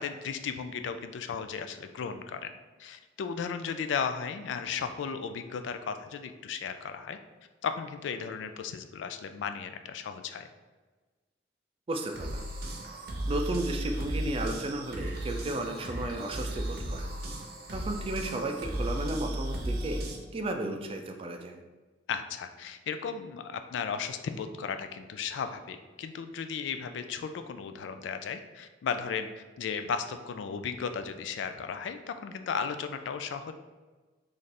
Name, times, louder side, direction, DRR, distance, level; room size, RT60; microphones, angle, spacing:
voice 1, 0.0-2.5 2.8-7.2 7.6-10.5 22.1-33.5, left 6 dB, 75° left, 9 dB, 0.3 m, -35 dB
voice 2, 11.9-12.4 13.3-17.1 17.7-20.0 20.3-21.6, right 2 dB, 30° right, 4 dB, 0.3 m, -34 dB
sound 1, 11.9-20.2, right 1 dB, 55° right, 0.7 m, -35 dB
3.3 x 2.4 x 4.1 m, 1.3 s
head